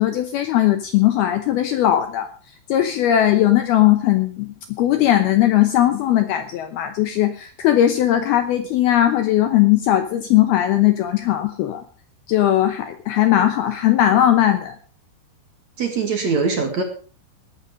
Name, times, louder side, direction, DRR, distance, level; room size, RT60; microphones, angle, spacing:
voice 1, 0.0-2.3 2.7-4.5 4.8-11.8 12.3-14.8, left 12 dB, 85° left, 8 dB, 2.2 m, -18 dB
voice 2, 15.8-16.8, right 4 dB, 55° right, 4 dB, 2.1 m, -22 dB
19.0 x 8.5 x 5.2 m, 0.39 s
omnidirectional pair, 5.9 m